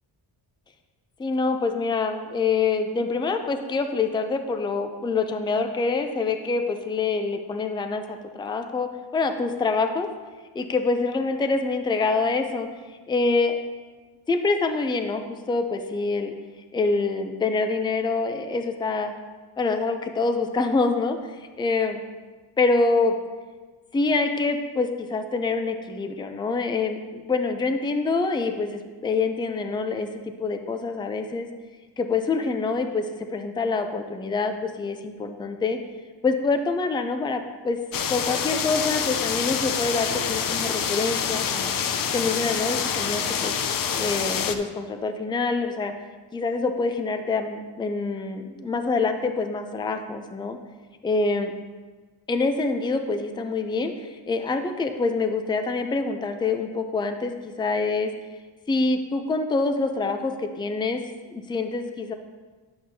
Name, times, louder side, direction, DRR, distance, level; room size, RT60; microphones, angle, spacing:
voice 1, 1.2-10.1 10.5-12.7 13.1-13.6 14.3-16.3 16.7-19.1 19.6-22.0 22.6-23.2 23.9-31.5 32.0-35.8 36.2-37.8 38.1-41.7 42.1-43.5 44.0-45.9 46.3-50.6 51.0-51.5 52.3-58.1 58.7-61.0 61.3-62.1, left 3 dB, 10° left, 6 dB, 0.4 m, -26 dB
sound 1, 37.9-44.5, left 7 dB, 55° left, 0.6 m, -26 dB
10.0 x 7.7 x 2.7 m, 1.4 s
cardioid pair, 135°, 42 cm